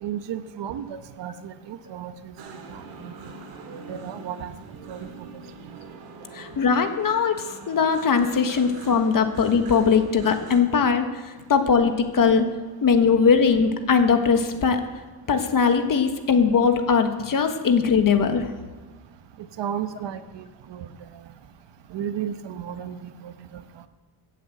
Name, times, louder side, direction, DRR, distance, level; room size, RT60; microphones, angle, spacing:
voice 1, 0.0-2.3 2.7-3.1 3.9-4.5 4.9-5.1 5.7-5.8 19.6-20.9 21.9-23.9, right 9 dB, 65° right, 10 dB, 1.1 m, -34 dB
sound 1, 2.4-10.6, right 4 dB, 90° right, 2.3 m, -43 dB
voice 2, 6.3-12.5 12.8-14.8 15.3-18.5, left 6 dB, 45° left, 7 dB, 1.5 m, -20 dB
15.0 x 7.8 x 7.9 m, 1.3 s
cardioid pair, 120°, 47 cm